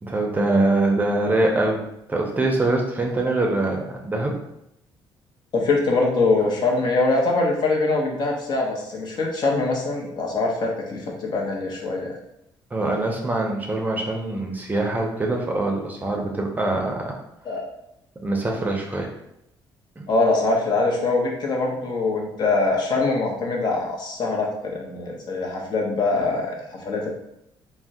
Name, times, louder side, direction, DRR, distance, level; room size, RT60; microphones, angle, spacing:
voice 1, 0.0-1.8 2.1-4.3 12.7-17.2 18.2-19.1 20.0-20.1, right 2 dB, 20° right, 1 dB, 0.5 m, -23 dB
voice 2, 5.5-12.1 17.4-17.6 20.1-26.5 26.8-27.1, left 3 dB, 55° left, -1 dB, 0.7 m, -23 dB
3.5 x 2.1 x 2.6 m, 0.81 s
cardioid pair, 105°, 9 cm